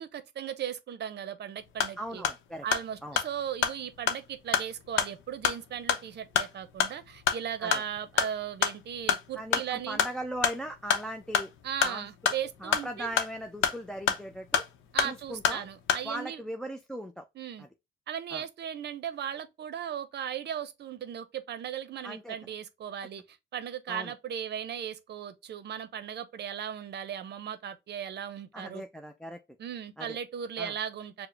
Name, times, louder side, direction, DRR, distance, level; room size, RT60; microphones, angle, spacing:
voice 1, 0.0-2.2 2.6-10.0 11.6-13.1 14.9-16.4 17.3-17.6 18.1-28.8 29.6-31.3, right 9 dB, 60° right, 0.6 m, -37 dB
sound 1, 1.6-16.1, left 8 dB, 80° left, 0.7 m, -31 dB
voice 2, 2.0-2.7 3.0-3.2 7.6-7.8 9.4-11.5 11.8-12.3 12.6-14.6 15.0-15.6 16.0-17.3 17.6-17.7 18.3-18.4 22.0-22.3 23.9-24.1 28.5-29.4 30.0-30.2 30.6-30.7, right 1 dB, 5° left, 0.4 m, -38 dB
4.7 x 2.1 x 3.1 m
cardioid pair, 90°, 20 cm